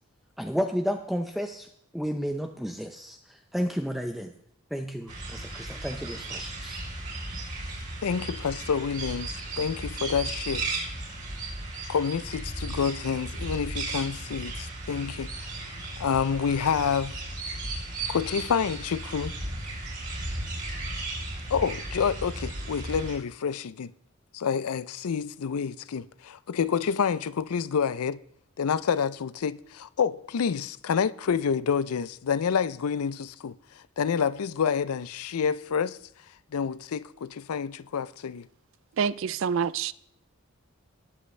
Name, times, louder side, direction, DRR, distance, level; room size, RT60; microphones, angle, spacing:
voice 1, 0.4-1.7 1.9-4.3 4.7-6.8, equal, ahead, 0.5 m, -32 dB
sound 1, 5.1-23.2, right 2 dB, 35° right, 4.0 m, -35 dB
voice 2, 8.0-10.7 11.9-15.3 16.0-17.2 18.1-19.3 21.5-23.9 24.3-28.2 28.6-33.5 34.0-36.0 36.5-38.5, left 6 dB, 85° left, 0.4 m, -28 dB
voice 3, 39.0-39.9, right 6 dB, 60° right, 0.4 m, -27 dB
19.0 x 7.8 x 3.3 m
head